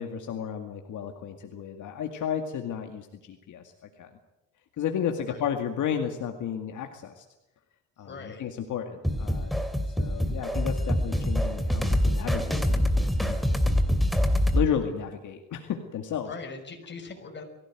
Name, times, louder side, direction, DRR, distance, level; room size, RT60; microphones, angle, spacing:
voice 1, 0.0-4.1 4.8-7.2 8.0-9.5 9.9-12.9 13.3-13.7 14.5-16.3, left 8 dB, 65° left, 5 dB, 2.2 m, -33 dB
voice 2, 8.0-8.4 16.3-17.4, left 4 dB, 35° left, 4 dB, 5.8 m, -40 dB
sound 1, 9.0-14.7, equal, ahead, 2.8 m, -25 dB
22.5 x 16.5 x 9.2 m, 0.99 s
cardioid pair, 125°, 33 cm